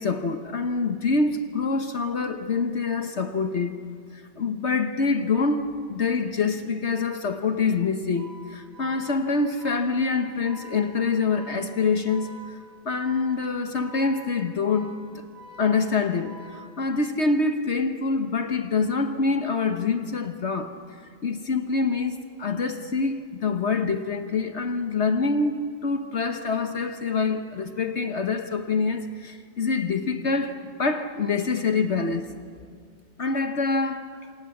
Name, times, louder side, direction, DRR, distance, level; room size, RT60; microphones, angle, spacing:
voice 1, 0.0-3.8 4.1-12.6 12.8-15.2 15.6-20.7 21.2-32.3 33.2-34.1, left 4 dB, 50° left, 1.3 m, -26 dB
Organ, 8.0-17.2, right 1 dB, 35° right, 3.2 m, -47 dB
27.5 x 27.0 x 7.2 m
omnidirectional pair, 1.7 m